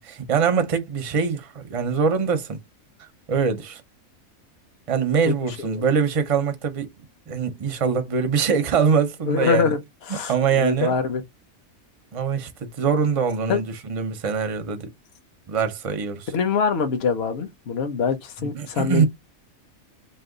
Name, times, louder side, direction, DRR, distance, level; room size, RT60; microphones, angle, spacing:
voice 1, 0.0-2.6 3.3-3.8 4.9-6.9 7.3-9.7 10.1-10.9 12.1-14.9 15.5-16.3 18.4-19.1, right 6 dB, 40° right, 0.5 m, -23 dB
voice 2, 5.2-5.8 9.3-9.8 10.1-11.2 13.5-13.6 16.3-19.1, left 5 dB, 50° left, 1.0 m, -24 dB
3.3 x 2.7 x 3.8 m
omnidirectional pair, 1.4 m